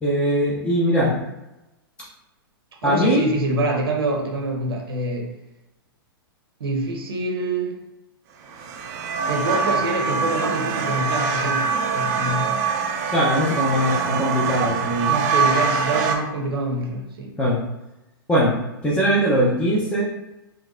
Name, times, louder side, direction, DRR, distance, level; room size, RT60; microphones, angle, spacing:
voice 1, 0.0-1.1 2.8-3.2 13.1-15.1 17.4-17.6 18.3-18.5 18.8-20.0, equal, 10° left, -6 dB, 0.7 m, -20 dB
voice 2, 2.8-5.3 6.6-7.7 9.3-12.6 15.1-17.3, right 2 dB, 70° right, 2 dB, 0.8 m, -25 dB
sound 1, 8.5-16.2, right 5 dB, 45° right, 0.5 m, -24 dB
3.9 x 2.3 x 2.5 m, 0.97 s
hypercardioid pair, 115°, 13 cm